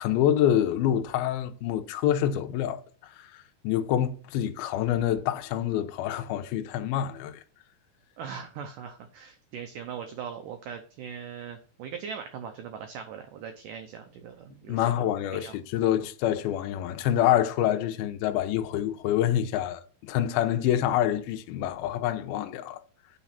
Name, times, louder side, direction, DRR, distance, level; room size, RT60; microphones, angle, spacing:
voice 1, 0.0-2.8 3.6-7.4 14.7-22.8, left 11 dB, 80° left, 2.3 m, -26 dB
voice 2, 8.2-15.5, right 7 dB, 85° right, 1.8 m, -40 dB
9.1 x 4.1 x 5.7 m
omnidirectional pair, 4.8 m